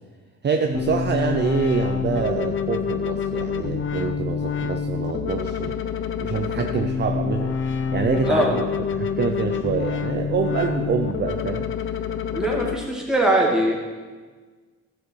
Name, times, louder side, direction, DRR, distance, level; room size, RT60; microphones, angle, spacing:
voice 1, 0.4-5.8 6.2-8.6 8.9-11.7, right 6 dB, 35° right, 4 dB, 0.6 m, -26 dB
sound 1, 0.7-12.8, left 6 dB, 40° left, 0.7 m, -27 dB
voice 2, 8.3-8.6 12.3-13.7, right 1 dB, ahead, -2 dB, 2.3 m, -21 dB
12.0 x 6.8 x 4.7 m, 1.5 s
cardioid pair, 90°, 30 cm